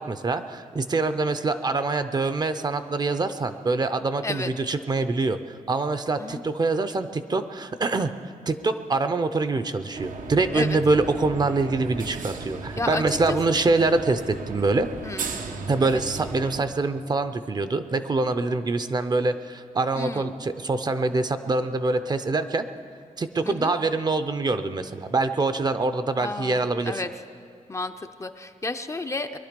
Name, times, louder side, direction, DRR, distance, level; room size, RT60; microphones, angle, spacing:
voice 1, 0.0-8.1 8.5-14.9 15.7-22.6 23.2-27.0, right 3 dB, 30° right, 10 dB, 0.5 m, -25 dB
sound 1, 9.9-16.6, right 3 dB, 90° right, 1.0 m, -36 dB
voice 2, 12.8-13.4 15.0-15.3 15.8-16.0 20.0-20.4 23.5-23.7 26.2-27.1 27.7-29.4, left 3 dB, 20° left, 7 dB, 0.5 m, -32 dB
21.5 x 11.5 x 5.2 m, 2.4 s
wide cardioid pair, 150°, 13 cm